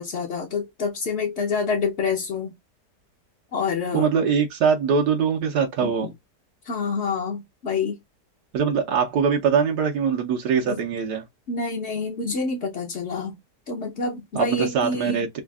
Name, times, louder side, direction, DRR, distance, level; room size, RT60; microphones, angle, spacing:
voice 1, 0.0-2.5 3.5-4.1 5.8-6.1 6.6-8.0 10.6-10.8 11.5-13.4 13.7-15.3, left 4 dB, 50° left, 0.9 m, -27 dB
voice 2, 3.9-6.1 8.5-11.2 14.3-15.4, right 6 dB, 75° right, 1.3 m, -22 dB
5.1 x 2.4 x 2.3 m
omnidirectional pair, 1.8 m